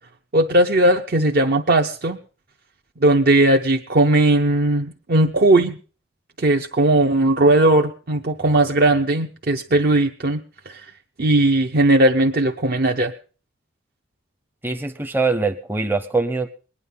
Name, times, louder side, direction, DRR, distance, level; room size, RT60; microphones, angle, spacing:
voice 1, 0.3-2.2 3.0-5.8 6.4-10.4 10.7-10.8 11.2-13.1, right 1 dB, 50° right, 3 dB, 0.7 m, -18 dB
voice 2, 14.6-16.5, right 3 dB, 10° right, 6 dB, 0.6 m, -23 dB
20.5 x 9.9 x 5.6 m, 0.39 s
head